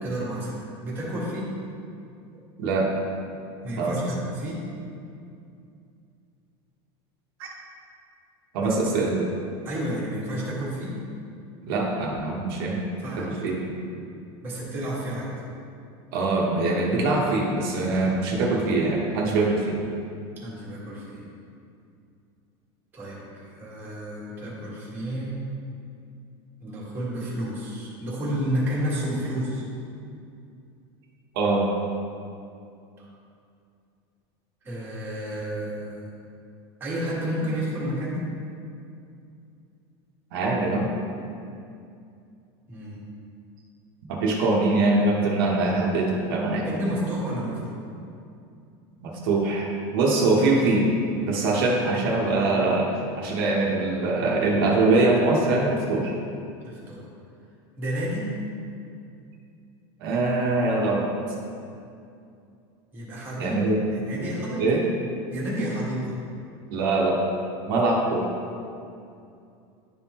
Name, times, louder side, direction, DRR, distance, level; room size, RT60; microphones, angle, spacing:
voice 1, 0.0-1.5 3.6-4.7 8.6-8.7 9.6-11.0 13.0-13.4 14.4-15.3 20.4-21.3 22.9-25.4 26.6-29.6 33.0-33.1 34.6-36.1 36.8-38.3 42.7-43.0 46.6-47.8 56.6-57.0 57.8-58.3 62.9-64.8 65.3-66.2 67.7-67.9, equal, 15° right, -7 dB, 1.5 m, -31 dB
voice 2, 2.6-2.9 3.8-4.0 7.4-7.5 8.5-9.3 11.7-12.8 13.2-13.8 16.1-19.8 31.3-31.7 40.3-40.9 44.1-46.7 49.0-50.9 51.3-52.9 53.2-56.2 60.0-61.0 63.4-63.8 64.6-64.8 66.7-67.2 67.7-68.2, right 2 dB, 65° right, -2 dB, 1.0 m, -23 dB
10.5 x 3.6 x 2.9 m, 2.5 s
supercardioid pair, 170°, 13 cm